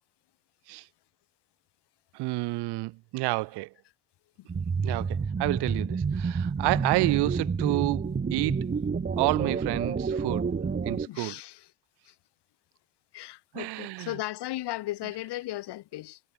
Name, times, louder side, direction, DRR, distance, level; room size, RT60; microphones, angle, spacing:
voice 1, 2.1-3.7 4.8-8.6 9.2-10.5 10.9-11.4 13.5-14.1, right 21 dB, 70° right, 0.5 m, -29 dB
sound 1, 4.5-11.1, right 5 dB, 20° right, 0.8 m, -29 dB
voice 2, 11.1-11.7 12.1-12.2 13.1-16.2, left 16 dB, 70° left, 1.1 m, -36 dB
hypercardioid pair, 50°, 42 cm